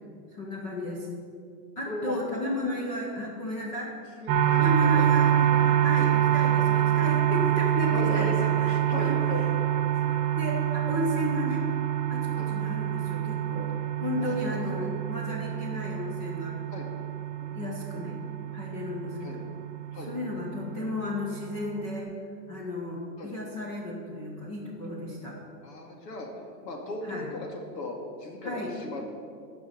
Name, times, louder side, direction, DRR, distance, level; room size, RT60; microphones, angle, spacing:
voice 1, 0.3-1.1 1.8-3.9 4.5-9.4 9.9-11.6 12.1-13.7 14.0-16.6 17.5-18.2 18.5-19.4 19.9-22.1 22.5-25.4 27.0-27.3 28.4-28.7, left 1 dB, 20° left, -3 dB, 0.7 m, -34 dB
voice 2, 1.9-2.2 4.2-5.1 5.5-5.7 7.9-8.4 8.6-9.5 12.3-12.5 14.2-14.9 15.4-15.6 16.7-16.9 17.4-17.7 19.2-19.4 19.9-20.1 23.2-23.3 25.6-26.3 26.6-29.1, left 2 dB, 85° left, 1 dB, 2.3 m, -37 dB
sound 1, 4.3-22.0, right 11 dB, 35° right, 1.1 m, -26 dB
11.0 x 5.2 x 7.4 m, 2.4 s
supercardioid pair, 180°, 48 cm